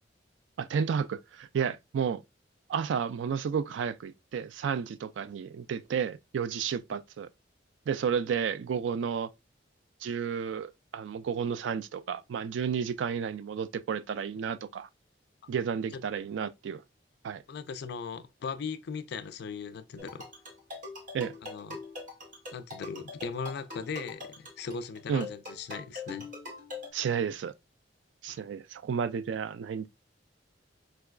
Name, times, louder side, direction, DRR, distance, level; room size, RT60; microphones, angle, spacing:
voice 1, 0.6-2.2 2.7-7.3 7.9-9.3 10.0-14.9 15.5-16.8 17.2-17.4 21.1-21.3 25.1-25.3 26.9-27.5 28.2-29.9, right 7 dB, 85° right, 0.3 m, -32 dB
voice 2, 17.5-20.3 21.4-21.8 22.5-26.3 28.3-28.4, left 5 dB, 60° left, 0.4 m, -38 dB
sound 1, 20.0-26.9, left 3 dB, 45° right, 0.9 m, -43 dB
4.7 x 2.3 x 2.2 m
head